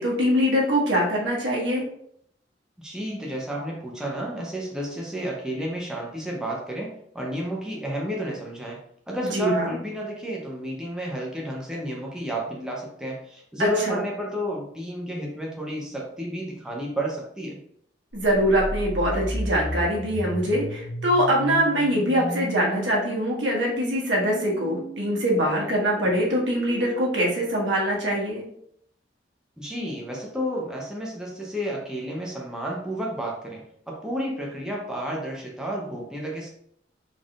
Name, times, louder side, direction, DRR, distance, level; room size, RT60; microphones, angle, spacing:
voice 1, 0.0-1.9 9.3-9.8 13.6-14.0 18.1-28.4, equal, 80° right, -3 dB, 1.3 m, -23 dB
voice 2, 2.8-8.8 9.1-17.6 29.6-36.5, equal, 5° right, -3 dB, 0.7 m, -31 dB
sound 1, 18.2-28.1, equal, 80° left, 0.8 m, -35 dB
4.0 x 3.5 x 2.4 m, 0.69 s
head